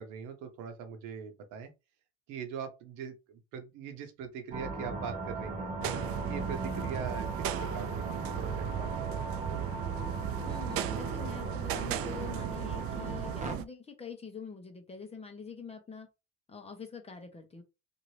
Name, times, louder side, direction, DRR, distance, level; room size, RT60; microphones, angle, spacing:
voice 1, 0.0-1.7 2.3-5.7 6.2-9.4, right 7 dB, 70° right, 0.9 m, -42 dB
sound 1, 4.5-13.5, right 2 dB, 25° right, 0.8 m, -38 dB
sound 2, 5.8-13.7, right 11 dB, 50° right, 0.4 m, -36 dB
voice 2, 10.4-16.1 16.5-17.6, left 6 dB, 20° left, 0.9 m, -45 dB
2.8 x 2.6 x 3.1 m
supercardioid pair, 110°, 31 cm